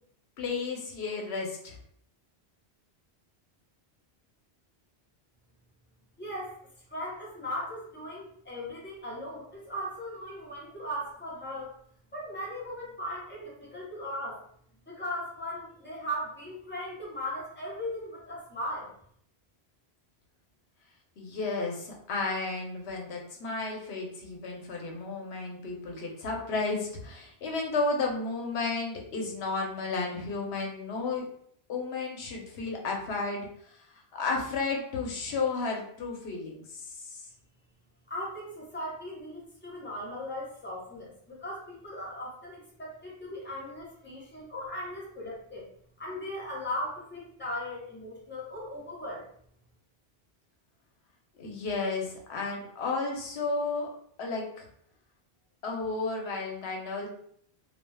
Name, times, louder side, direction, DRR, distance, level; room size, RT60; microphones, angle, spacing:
voice 1, 0.4-1.7 21.2-31.3 31.7-33.5 34.1-37.2 51.4-53.9 54.2-54.7 55.6-57.1, left 3 dB, 85° left, 0 dB, 0.9 m, -33 dB
voice 2, 6.2-6.5 6.9-11.7 12.1-14.4 14.9-18.9 38.1-45.6 46.0-49.2, left 1 dB, 10° left, -5 dB, 0.8 m, -38 dB
2.3 x 2.2 x 3.3 m, 0.64 s
omnidirectional pair, 1.1 m